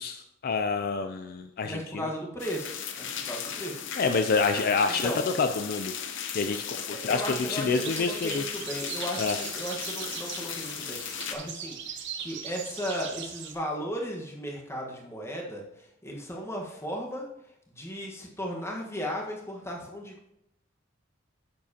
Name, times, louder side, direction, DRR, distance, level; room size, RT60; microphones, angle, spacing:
voice 1, 0.0-2.1 4.0-5.9 6.3-7.2 7.5-8.4 9.2-9.4, left 4 dB, 50° left, 8 dB, 0.4 m, -27 dB
voice 2, 1.6-3.8 4.9-5.2 6.9-17.2 17.7-20.3, equal, 15° left, -1 dB, 1.3 m, -36 dB
sound 1, 2.4-11.4, left 8 dB, 65° left, 0.8 m, -36 dB
sound 2, 7.7-13.5, right 8 dB, 60° right, 0.9 m, -40 dB
9.3 x 7.3 x 2.8 m, 0.81 s
head